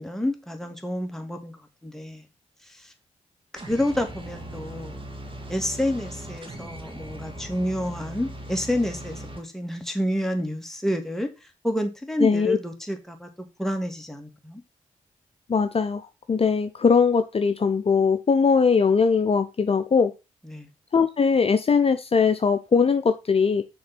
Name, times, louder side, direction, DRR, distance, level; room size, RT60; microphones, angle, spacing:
voice 1, 0.0-2.2 2.7-2.9 3.7-5.0 5.5-11.3 11.6-13.3 13.6-14.6 20.4-20.7, left 1 dB, 5° left, 2.3 m, -29 dB
sound 1, 3.5-9.4, right 1 dB, 35° right, 2.2 m, -39 dB
voice 2, 12.2-12.6 15.5-20.1 20.9-23.6, left 5 dB, 40° left, 0.7 m, -21 dB
6.4 x 3.8 x 6.2 m
supercardioid pair, 45°, 14 cm